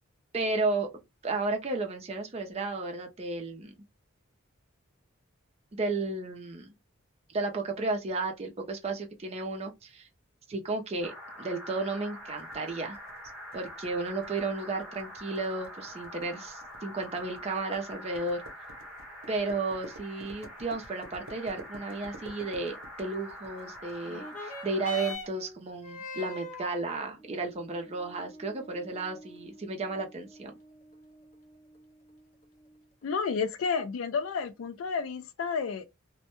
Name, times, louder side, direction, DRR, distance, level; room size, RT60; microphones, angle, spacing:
voice 1, 0.3-0.9 1.2-3.7 5.7-6.7 7.3-10.1 10.5-11.1 11.4-13.0 13.5-18.4 19.3-30.5, right 3 dB, 30° right, 0.5 m, -33 dB
sound 1, 11.0-25.2, equal, 5° right, 0.8 m, -45 dB
sound 2, 12.4-24.0, right 2 dB, 80° right, 0.6 m, -50 dB
sound 3, 24.0-33.0 33.9-34.0, left 2 dB, 35° left, 0.6 m, -45 dB
voice 2, 33.0-35.9, left 5 dB, 70° left, 0.3 m, -31 dB
2.1 x 2.1 x 2.9 m
head